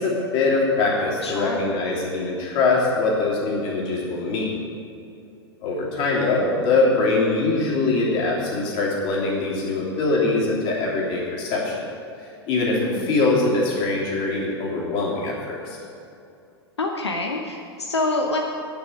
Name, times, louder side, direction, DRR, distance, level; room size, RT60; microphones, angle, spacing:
voice 1, 0.0-4.6 5.6-11.8 12.5-15.8, left 3 dB, 40° left, -4 dB, 3.1 m, -23 dB
voice 2, 1.2-1.7 12.8-13.1 16.8-18.4, left 2 dB, 80° left, 1 dB, 0.8 m, -26 dB
8.8 x 7.0 x 8.7 m, 2.6 s
figure-of-eight pair, 95°, 14 cm